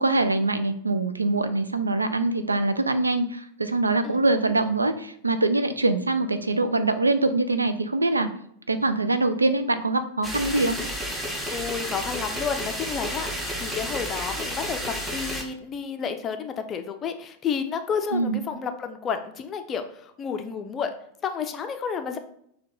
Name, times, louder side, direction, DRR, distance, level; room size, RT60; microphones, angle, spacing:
voice 1, 0.0-8.3 8.7-10.8 18.1-18.4, right 2 dB, 80° right, 10 dB, 0.3 m, -23 dB
sound 1, 10.2-15.4, equal, 5° right, 0.8 m, -31 dB
voice 2, 11.5-13.3 13.6-20.9 21.2-22.2, left 6 dB, 25° left, 6 dB, 0.4 m, -31 dB
6.3 x 2.3 x 3.7 m, 0.70 s
figure-of-eight pair, 90°, 0 cm